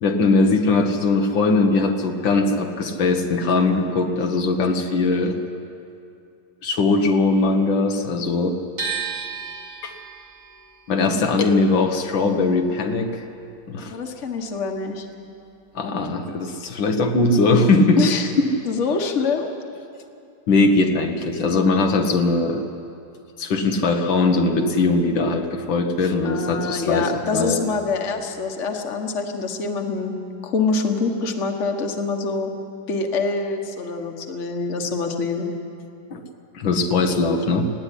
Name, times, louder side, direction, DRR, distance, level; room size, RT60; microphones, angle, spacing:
voice 1, 0.0-5.4 6.6-8.6 9.8-9.9 10.9-13.2 13.7-13.9 15.8-18.0 18.4-18.5 20.5-22.7 23.4-27.6 36.1-36.2 36.5-37.7, left 3 dB, 80° left, 4 dB, 2.0 m, -20 dB
sound 1, 8.8-14.8 15.1-16.4, right 6 dB, 60° right, 3.1 m, -35 dB
voice 2, 13.9-15.1 18.0-18.3 18.6-19.5 26.2-30.1 30.4-32.5 32.9-35.5, left 4 dB, 40° left, 3 dB, 1.7 m, -25 dB
18.5 x 14.5 x 10.0 m, 2.6 s
omnidirectional pair, 2.0 m